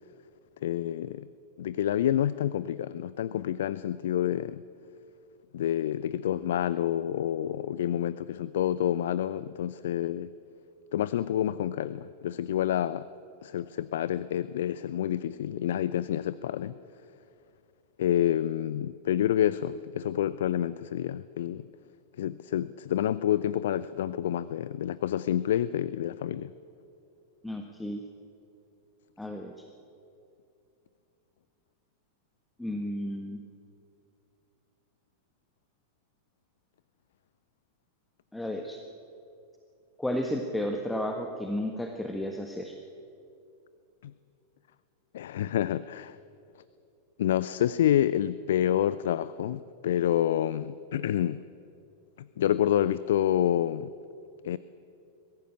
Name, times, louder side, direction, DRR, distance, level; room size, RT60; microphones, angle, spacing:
voice 1, 0.6-1.3 1.6-4.6 5.5-10.3 10.9-13.1 13.4-16.7 18.0-21.6 22.2-26.5 44.0-44.1 45.1-46.2 47.2-51.4 52.2-53.9 54.4-54.6, left 11 dB, 60° left, 17 dB, 0.4 m, -28 dB
voice 2, 27.4-28.0 29.2-29.7 32.6-33.4 38.3-38.8 40.0-42.8, left 1 dB, 5° left, 4 dB, 1.4 m, -33 dB
22.0 x 15.0 x 8.9 m, 2.6 s
figure-of-eight pair, 90°, 0 cm